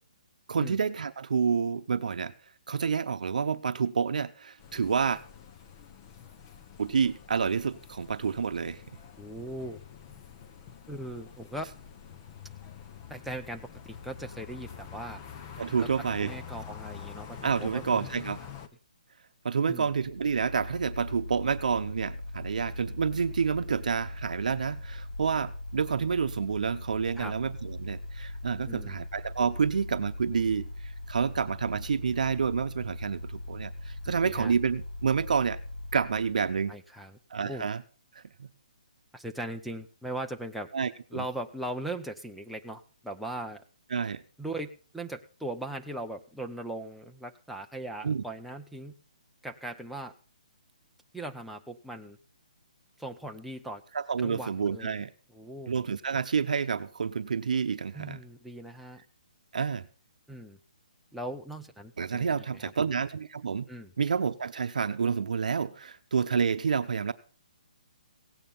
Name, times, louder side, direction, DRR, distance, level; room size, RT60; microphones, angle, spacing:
voice 1, 0.5-2.3 2.7-5.2 6.8-8.8 15.6-16.3 17.4-18.4 19.4-35.6 35.9-36.7 37.3-37.8 38.4-38.5 40.7-41.2 43.9-44.2 48.0-48.2 53.9-55.1 55.7-58.2 59.5-59.8 62.0-63.7 64.0-67.1, right 6 dB, 65° right, 10 dB, 0.8 m, -29 dB
sound 1, 4.6-18.7, left 7 dB, 20° left, 0.9 m, -46 dB
voice 2, 9.2-9.8 10.9-11.7 13.1-13.6 14.0-15.2 15.8-15.9 16.2-18.0 19.7-19.9 27.2-27.3 28.7-29.0 34.1-34.5 36.7-37.2 37.4-37.6 39.1-40.7 41.1-43.6 44.4-48.9 49.4-50.1 51.1-52.2 53.0-53.8 54.2-54.9 55.3-55.7 57.9-59.0 60.3-60.6 61.1-62.7 63.7-63.9, right 1 dB, ahead, 1 dB, 0.6 m, -39 dB
Mechanical fan, 19.9-36.7, left 1 dB, 70° left, 7.0 m, -40 dB
17.0 x 9.0 x 5.6 m, 0.37 s
hypercardioid pair, 170°, 4 cm